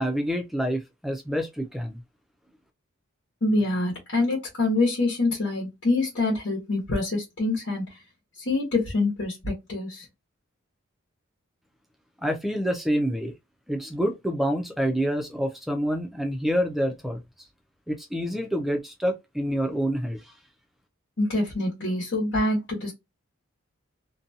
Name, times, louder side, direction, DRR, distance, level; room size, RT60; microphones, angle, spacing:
voice 1, 0.0-2.0 12.2-13.3 13.7-17.2 17.9-20.3, equal, ahead, 0.4 m, -27 dB
voice 2, 3.4-7.8 8.4-10.0 21.2-22.9, left 2 dB, 60° left, 1.1 m, -25 dB
2.6 x 2.3 x 2.6 m
head